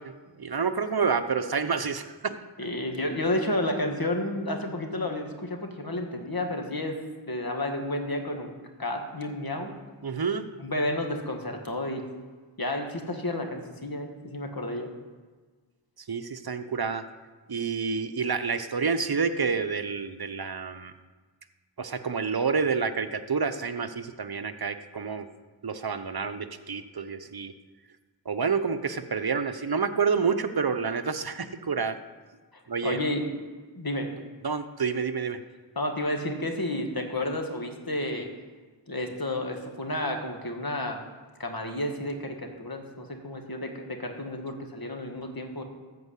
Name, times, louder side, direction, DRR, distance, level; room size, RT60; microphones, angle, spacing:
voice 1, 0.0-2.4 10.0-10.4 16.1-17.0 17.5-20.9 21.8-25.3 25.6-27.5 28.3-32.0 32.7-33.0 34.4-35.4, right 5 dB, 55° right, 9 dB, 0.8 m, -28 dB
voice 2, 2.6-7.0 7.3-8.5 8.8-9.8 10.6-12.0 12.6-14.9 32.5-33.4 33.8-34.1 35.8-38.3 38.9-41.0 41.4-45.6, left 1 dB, 50° left, 3 dB, 1.8 m, -31 dB
14.0 x 4.7 x 8.3 m, 1.4 s
wide cardioid pair, 40°, 45 cm